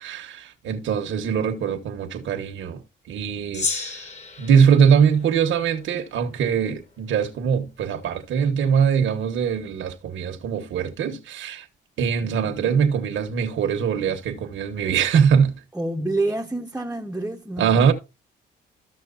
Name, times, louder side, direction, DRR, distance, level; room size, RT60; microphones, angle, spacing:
voice 1, 0.0-2.8 3.1-4.1 4.4-11.7 12.0-15.6 17.6-17.9, right 7 dB, 75° right, 1.3 m, -22 dB
Gong, 3.5-6.2, left 4 dB, 35° left, 1.8 m, -33 dB
voice 2, 15.7-17.9, right 2 dB, 10° right, 0.9 m, -28 dB
13.5 x 6.4 x 2.5 m
cardioid pair, 90°, 20 cm